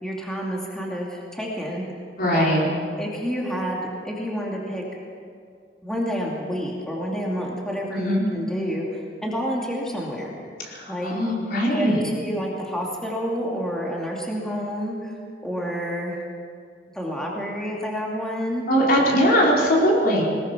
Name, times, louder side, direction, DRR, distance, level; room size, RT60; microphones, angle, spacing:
voice 1, 0.0-1.8 2.2-2.5 3.0-5.0 5.8-10.4 10.9-11.2 11.7-15.1 15.4-16.2 16.9-18.6, equal, 5° left, -3 dB, 2.5 m, -29 dB
voice 2, 2.2-2.6 7.9-8.2 11.0-12.0 18.7-20.2, equal, 55° left, -3 dB, 4.8 m, -20 dB
20.5 x 20.5 x 6.2 m, 2.2 s
head